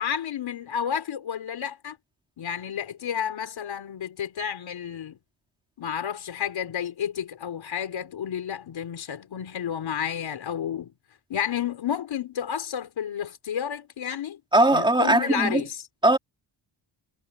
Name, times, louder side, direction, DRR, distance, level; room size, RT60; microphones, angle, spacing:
voice 1, 0.0-2.0 2.4-5.2 5.8-10.9 11.3-14.4 14.7-15.9, left 8 dB, 75° left, 4.1 m, -31 dB
voice 2, 14.5-15.6 16.0-16.2, right 2 dB, 10° right, 3.4 m, -19 dB
wide cardioid pair, 160°, 46 cm